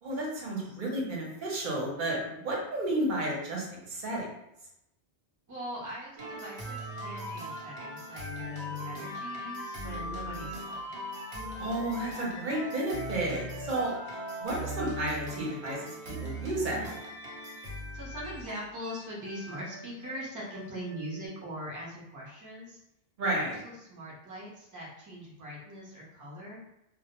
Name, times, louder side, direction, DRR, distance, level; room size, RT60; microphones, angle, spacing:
voice 1, 0.0-4.3 11.6-15.8 16.2-17.0 23.2-23.6, right 1 dB, 55° right, -3 dB, 0.8 m, -32 dB
voice 2, 5.5-10.9 17.9-22.8 23.2-26.6, equal, 25° right, -5 dB, 0.5 m, -42 dB
sound 1, 6.2-21.3, equal, 85° right, 0.9 m, -40 dB
2.1 x 2.1 x 2.8 m, 0.86 s
omnidirectional pair, 1.1 m